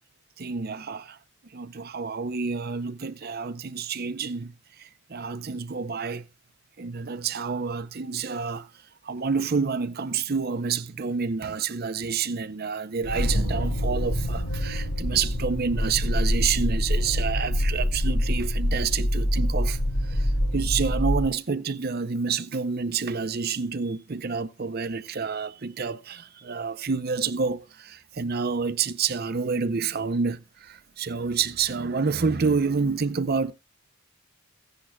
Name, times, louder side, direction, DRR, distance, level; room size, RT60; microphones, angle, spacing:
voice 1, 0.4-1.2 1.5-6.3 6.8-8.7 9.0-33.5, right 5 dB, 45° right, 0.6 m, -28 dB
sound 1, 13.0-21.3, equal, 85° left, 5.0 m, -25 dB
15.5 x 10.5 x 2.3 m
head